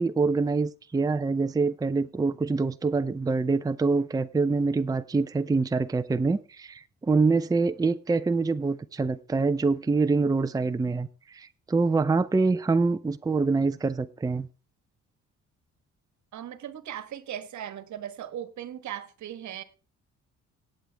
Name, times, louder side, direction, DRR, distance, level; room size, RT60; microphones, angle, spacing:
voice 1, 0.0-14.5, right 4 dB, 10° right, 0.5 m, -25 dB
voice 2, 16.3-19.6, right 10 dB, 70° right, 1.3 m, -38 dB
18.0 x 7.7 x 3.4 m
cardioid pair, 90°, 30 cm